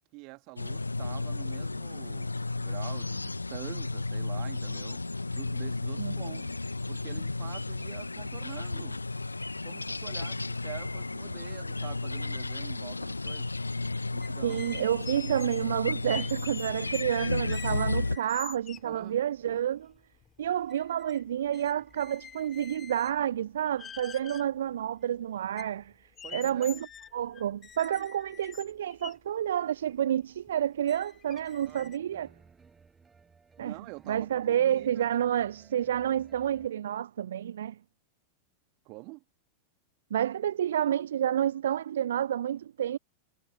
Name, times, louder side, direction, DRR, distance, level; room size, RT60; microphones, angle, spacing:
voice 1, 0.1-5.0 5.3-6.5 6.9-9.0 9.6-13.5 14.1-14.6 18.8-19.2 26.2-26.9 31.6-31.9 33.6-35.1 38.9-39.2, right 27 dB, 45° right, 2.1 m, -46 dB
sound 1, 0.6-18.2, left 3 dB, 80° left, 0.8 m, -33 dB
sound 2, 14.2-19.0 19.5-19.6 19.9-21.2 21.5-23.2 23.7-24.5 25.0-25.1 25.6-29.2 29.8-29.9 30.4-30.5 30.9-32.0, left 7 dB, 20° left, 2.5 m, -46 dB
voice 2, 14.4-19.9 20.4-25.9 26.3-26.9 27.1-32.3 33.6-33.7 34.1-37.8 40.1-43.0, right 10 dB, 60° right, 0.4 m, -29 dB
sound 3, 31.3-36.7, right 5 dB, 15° right, 6.1 m, -59 dB
figure-of-eight pair, 90°, 0 cm